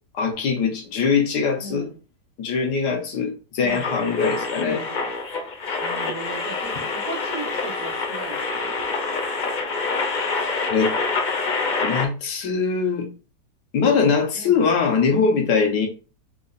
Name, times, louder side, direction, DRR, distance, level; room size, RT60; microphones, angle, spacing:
voice 1, 0.1-1.9 2.4-4.8 10.7-11.0 11.8-13.1 13.7-15.9, left 5 dB, 90° left, 1.7 m, -22 dB
voice 2, 1.6-2.0 3.6-4.0 4.6-5.1 5.8-8.7 14.3-14.6 15.1-15.4, right 3 dB, 65° right, 1.6 m, -37 dB
sound 1, 3.7-12.0, left 4 dB, 65° left, 0.4 m, -26 dB
4.2 x 4.0 x 2.5 m
omnidirectional pair, 1.7 m